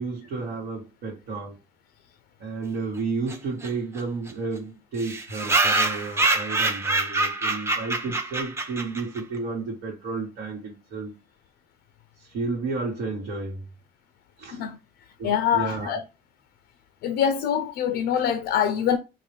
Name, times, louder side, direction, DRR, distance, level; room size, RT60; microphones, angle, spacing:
voice 1, 0.0-1.6 2.4-11.1 12.2-13.7 14.4-14.6 15.2-16.0, right 4 dB, 80° right, 1.1 m, -32 dB
sound 1, 3.3-3.4 3.6-3.7 4.0-4.1 4.3-4.4 5.0-9.2, right 2 dB, 15° right, 0.6 m, -25 dB
voice 2, 15.2-16.0 17.0-19.0, left 8 dB, 75° left, 0.4 m, -24 dB
3.8 x 2.1 x 3.1 m
cardioid pair, 110°, 17 cm